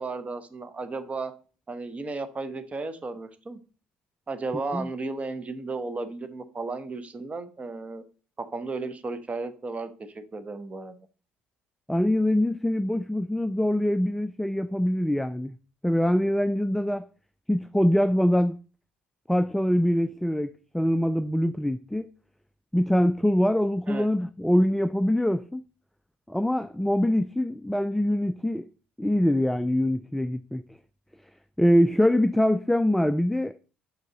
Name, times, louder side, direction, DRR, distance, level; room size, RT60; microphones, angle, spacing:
voice 1, 0.0-1.3 1.7-3.6 4.3-8.0 8.4-11.0 23.9-24.1, right 3 dB, 25° right, 1.0 m, -34 dB
voice 2, 11.9-15.5 15.8-17.0 17.5-18.6 19.3-22.1 22.7-25.6 26.3-28.7 29.0-30.6 31.6-33.5, left 1 dB, 5° left, 0.3 m, -24 dB
6.5 x 5.2 x 3.9 m
hypercardioid pair, 60°, 5 cm